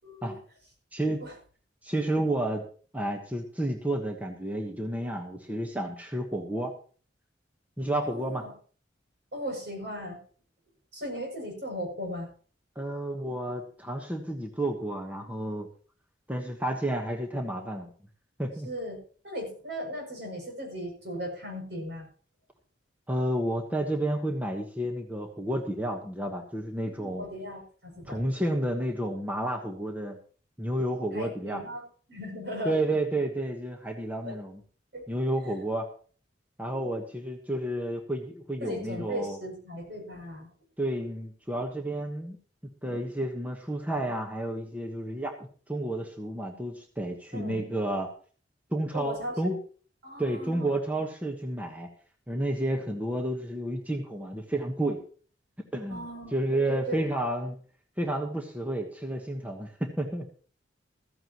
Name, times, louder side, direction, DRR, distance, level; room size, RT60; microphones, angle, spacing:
voice 1, 0.0-0.3 1.2-1.3 8.0-8.5 9.3-10.2 10.9-12.3 18.6-19.0 19.2-22.1 26.8-28.2 31.1-31.8 32.1-32.8 34.2-34.4 34.9-35.1 38.6-40.5 47.3-47.7 48.9-49.6 50.0-50.7 55.9-56.4 56.7-57.0, equal, 65° right, 0 dB, 7.4 m, -37 dB
voice 2, 0.9-1.2 1.8-2.6 2.9-6.7 7.8-8.4 12.7-15.7 16.3-17.9 18.4-18.7 23.1-27.3 28.0-30.2 30.6-31.6 32.6-34.6 35.1-35.9 36.6-39.4 40.8-42.4 42.8-45.3 45.7-48.1 48.7-49.6 50.2-51.9 52.3-55.0 55.7-56.0 56.3-57.6 58.0-60.3, right 1 dB, 10° right, 2 dB, 1.3 m, -31 dB
15.0 x 15.0 x 3.1 m, 0.42 s
head